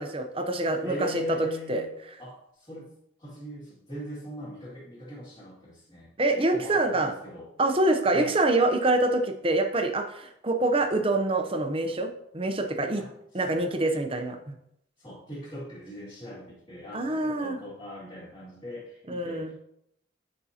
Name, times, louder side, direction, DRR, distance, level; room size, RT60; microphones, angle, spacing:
voice 1, 0.0-1.2 1.7-1.8 6.2-7.1 7.6-13.0 13.3-14.5 16.9-17.6 19.1-19.5, right 2 dB, 30° right, 6 dB, 0.7 m, -26 dB
voice 2, 0.8-1.9 2.2-2.9 3.2-7.5 8.1-8.4 13.0-13.6 15.0-19.6, left 1 dB, 25° left, -10 dB, 2.1 m, -40 dB
9.3 x 5.4 x 2.9 m, 0.75 s
head